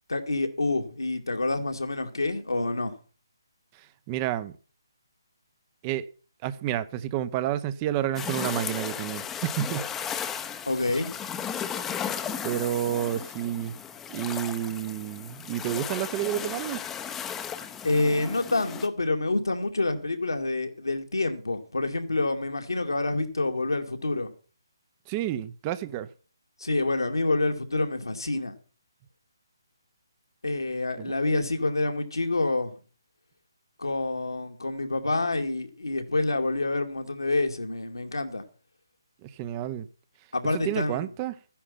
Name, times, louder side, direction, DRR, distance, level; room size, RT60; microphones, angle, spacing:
voice 1, 0.1-3.0 10.7-11.1 17.8-24.3 26.6-28.5 30.4-32.7 33.8-38.4 40.3-41.1, left 2 dB, 75° left, 2.4 m, -27 dB
voice 2, 4.1-4.5 5.8-6.1 6.4-9.9 12.4-13.7 14.1-16.8 25.1-26.1 31.0-31.1 39.2-39.9 40.5-41.3, right 12 dB, 20° right, 0.7 m, -30 dB
sound 1, 8.2-18.9, left 8 dB, 10° left, 0.8 m, -35 dB
14.0 x 10.0 x 5.7 m
figure-of-eight pair, 145°, 2 cm